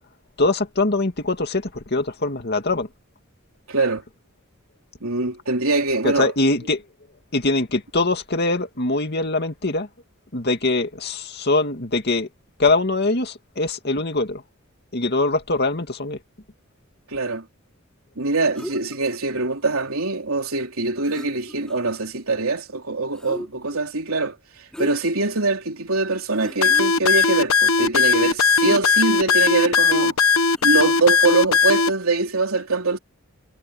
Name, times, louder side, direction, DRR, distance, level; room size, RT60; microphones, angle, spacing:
voice 1, 0.4-2.9 6.0-6.8 7.3-9.9 10.3-12.3 12.6-14.4 14.9-16.2, left 2 dB, 50° left, 2.3 m, -22 dB
voice 2, 3.7-4.0 5.0-6.3 17.1-17.5 18.2-24.4 24.8-30.2 30.6-33.0, right 3 dB, 80° right, 3.5 m, -23 dB
sound 1, 18.5-19.2 20.8-20.9 21.0-22.0 23.1-23.8 24.7-25.2 25.7-25.8 26.3-26.8 28.7-29.5 30.5-30.7, equal, 5° left, 3.2 m, -37 dB
sound 2, 26.6-31.9, left 5 dB, 75° left, 1.1 m, -18 dB
head